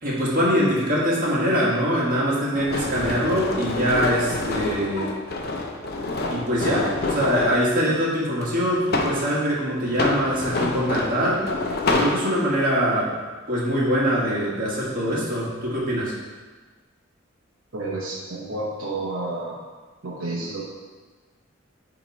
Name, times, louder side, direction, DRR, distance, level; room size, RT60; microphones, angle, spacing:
voice 1, 0.0-5.1 6.3-11.5 11.9-13.1 13.5-16.1, equal, 45° right, -6 dB, 1.7 m, -23 dB
sound 1, 2.6-7.6 8.4-9.2 9.9-12.2, left 2 dB, 50° left, 0.7 m, -27 dB
voice 2, 17.7-19.6 20.0-20.6, right 2 dB, 80° right, -5 dB, 0.9 m, -30 dB
9.1 x 3.1 x 4.1 m, 1.4 s
head